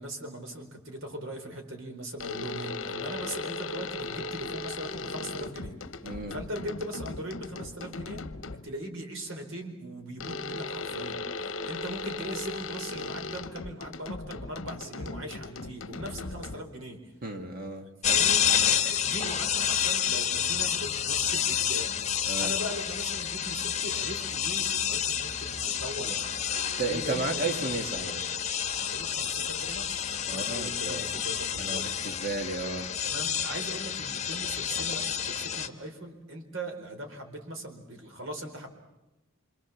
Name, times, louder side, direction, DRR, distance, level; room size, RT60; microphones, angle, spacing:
voice 1, 0.0-5.8 6.0-8.3 8.6-17.1 18.0-27.7 28.7-32.3 33.0-38.7, right 1 dB, 65° right, 4 dB, 4.4 m, -40 dB
sound 1, 2.2-8.8 10.2-16.8, left 3 dB, 65° left, 0.9 m, -37 dB
voice 2, 6.0-6.3 17.2-17.9 22.3-22.5 26.1-26.2 26.8-28.2 30.3-31.1 31.6-32.9, right 3 dB, 45° right, 4 dB, 2.0 m, -33 dB
sound 2, 18.0-35.7, left 9 dB, 35° left, 1.4 m, -29 dB
27.0 x 25.5 x 7.2 m, 1.0 s
head